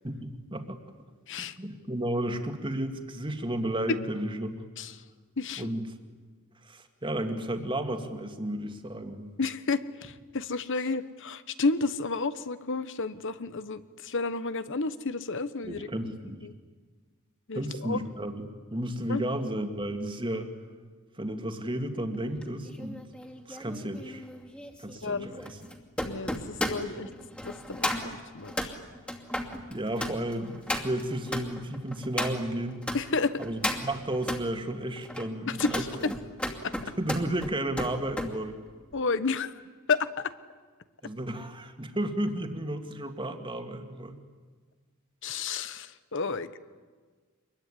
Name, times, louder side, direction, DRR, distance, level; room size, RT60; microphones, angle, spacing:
voice 1, 0.0-0.8 1.4-4.6 5.6-5.9 6.6-9.3 15.6-16.4 17.5-20.5 21.2-23.0 23.5-24.2 24.8-25.6 29.7-32.8 33.4-36.1 37.0-38.6 41.0-44.2, right 1 dB, 25° right, 6 dB, 2.2 m, -33 dB
voice 2, 5.4-5.7 9.4-15.9 16.4-16.5 17.5-18.0 19.1-19.2 25.0-25.3 26.0-27.1 27.4-28.7 32.9-33.4 35.5-35.9 36.6-36.8 38.9-39.5 39.9-40.3 45.2-46.6, left 4 dB, 60° left, 13 dB, 1.1 m, -31 dB
sound 1, 22.4-33.0 33.4-34.4 35.0-38.3 38.7-39.0, left 1 dB, 5° left, 2.5 m, -35 dB
26.0 x 22.0 x 9.9 m, 1.5 s
head